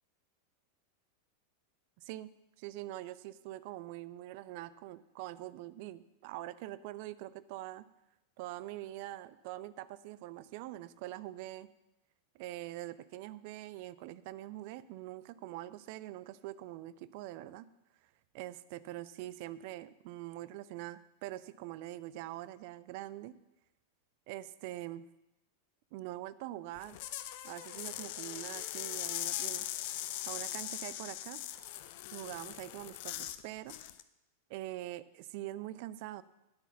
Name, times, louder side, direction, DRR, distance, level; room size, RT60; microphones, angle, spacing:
voice 1, 2.0-2.3 2.6-7.9 8.4-11.7 12.3-17.7 18.3-23.4 24.3-25.0 25.9-27.0 27.4-29.7 30.2-31.4 32.1-33.7 34.5-36.2, right 15 dB, 45° right, 16 dB, 0.4 m, -44 dB
sound 1, 26.8-33.4 33.7-34.0, left 14 dB, 50° left, 0.5 m, -40 dB
10.5 x 8.0 x 5.8 m, 0.93 s
figure-of-eight pair, 90°, 0 cm